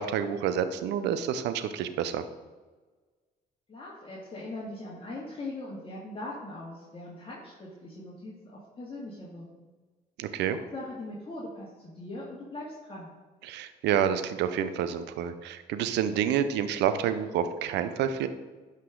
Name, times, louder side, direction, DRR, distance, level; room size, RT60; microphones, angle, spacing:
voice 1, 0.0-2.2 10.2-10.6 13.4-18.3, right 9 dB, 80° right, 11 dB, 0.7 m, -28 dB
voice 2, 3.7-9.6 10.5-13.1, left 2 dB, 30° left, -5 dB, 2.4 m, -41 dB
11.0 x 5.5 x 3.8 m, 1.3 s
supercardioid pair, 65°, 18 cm